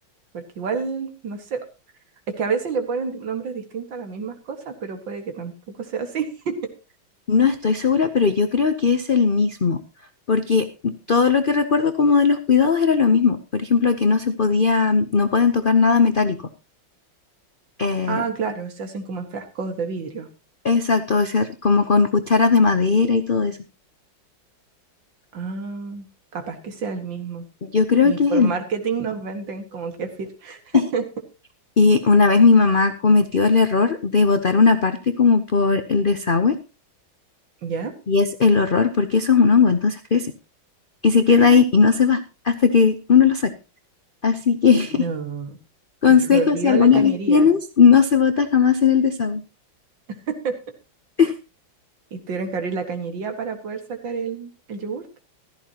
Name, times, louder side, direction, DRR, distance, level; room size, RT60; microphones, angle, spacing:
voice 1, 0.3-1.7 2.3-5.5 5.8-6.7 18.1-20.3 25.3-26.1 26.3-27.4 28.0-31.0 37.6-37.9 41.3-41.7 44.9-45.6 46.1-47.5 50.1-50.6 52.1-55.1, right 5 dB, 65° right, 6 dB, 2.5 m, -29 dB
voice 2, 7.3-9.8 10.3-16.4 17.8-18.2 20.6-23.6 27.6-28.5 30.7-30.8 31.8-36.6 38.1-40.3 41.0-43.5 44.2-45.0 46.0-49.4 51.2-51.3, left 5 dB, 75° left, 9 dB, 0.4 m, -18 dB
15.5 x 13.5 x 2.9 m, 0.30 s
omnidirectional pair, 2.2 m